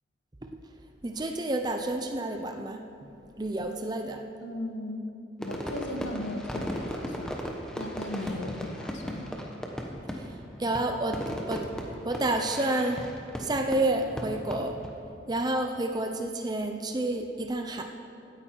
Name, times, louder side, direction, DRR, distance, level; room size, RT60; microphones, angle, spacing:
voice 1, 1.0-2.8 3.4-4.2 10.1-11.2 11.5-11.7 12.0-13.1 13.4-14.8 15.3-17.8, right 2 dB, 20° right, 4 dB, 0.6 m, -29 dB
voice 2, 4.4-5.1 5.4-7.4 7.7-9.4, left 1 dB, 80° left, 3 dB, 1.4 m, -37 dB
Fireworks, 5.4-14.9, equal, 5° left, 1.0 m, -37 dB
16.0 x 8.9 x 4.6 m, 2.6 s
head